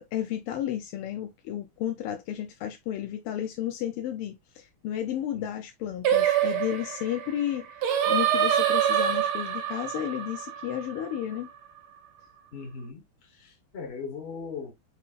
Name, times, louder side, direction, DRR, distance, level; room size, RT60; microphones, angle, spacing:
voice 1, 0.0-11.5, left 11 dB, 90° left, 1.6 m, -33 dB
Singing, 6.0-11.3, right 9 dB, 80° right, 1.7 m, -26 dB
voice 2, 12.5-13.0 13.3-14.7, left 5 dB, 35° left, 1.2 m, -38 dB
5.4 x 3.7 x 2.4 m
omnidirectional pair, 2.4 m